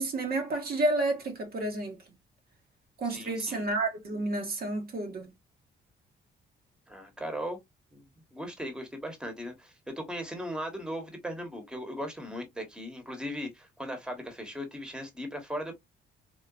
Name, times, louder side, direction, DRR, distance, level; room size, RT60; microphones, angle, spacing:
voice 1, 0.0-2.0 3.0-5.3, right 2 dB, 50° right, 1.0 m, -30 dB
voice 2, 3.0-3.6 6.9-7.6 7.9-8.0 8.3-15.7, equal, 5° right, 1.1 m, -38 dB
3.7 x 2.3 x 2.3 m
cardioid pair, 90°, 20 cm